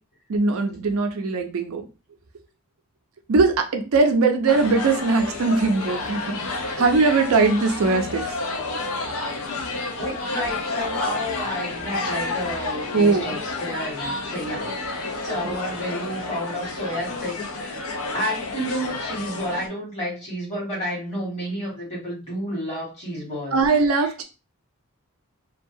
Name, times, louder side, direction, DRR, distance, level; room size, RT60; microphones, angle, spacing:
voice 1, 0.3-1.9 3.3-6.4 6.8-8.2 12.9-13.3 15.4-15.6 23.5-24.2, right 3 dB, 75° right, 6 dB, 0.4 m, -20 dB
sound 1, 4.5-19.7, left 3 dB, 75° left, 0.5 m, -30 dB
voice 2, 10.0-17.8 18.1-24.1, equal, 30° left, -6 dB, 1.5 m, -31 dB
2.6 x 2.2 x 2.6 m, 0.31 s
head